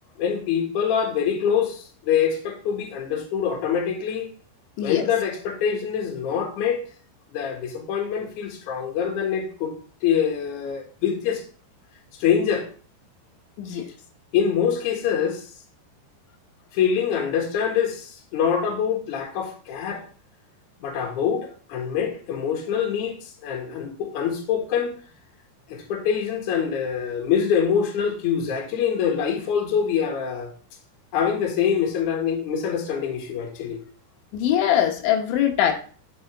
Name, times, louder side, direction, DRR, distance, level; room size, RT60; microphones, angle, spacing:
voice 1, 0.2-4.3 4.8-6.8 7.3-9.8 10.0-11.4 12.2-12.7 14.3-15.5 16.7-20.0 20.8-25.0 25.7-30.5 31.1-33.8, left 7 dB, 55° left, 1 dB, 2.6 m, -25 dB
voice 2, 34.3-35.7, left 10 dB, 90° left, 3 dB, 3.5 m, -22 dB
8.7 x 6.2 x 3.4 m, 0.40 s
omnidirectional pair, 5.2 m